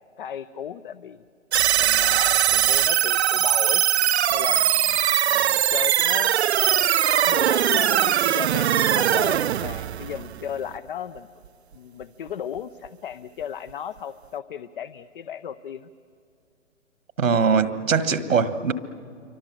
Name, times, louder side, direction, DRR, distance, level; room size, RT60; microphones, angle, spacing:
voice 1, 0.2-1.2 1.8-3.8 4.3-5.0 5.3-6.3 7.2-11.3 11.7-15.9, left 9 dB, 40° left, 0.6 m, -35 dB
sound 1, 1.5-10.8, right 11 dB, 55° right, 0.5 m, -21 dB
voice 2, 17.2-18.7, right 5 dB, 80° right, 1.6 m, -21 dB
28.0 x 24.5 x 7.6 m
hypercardioid pair, 145°, 39 cm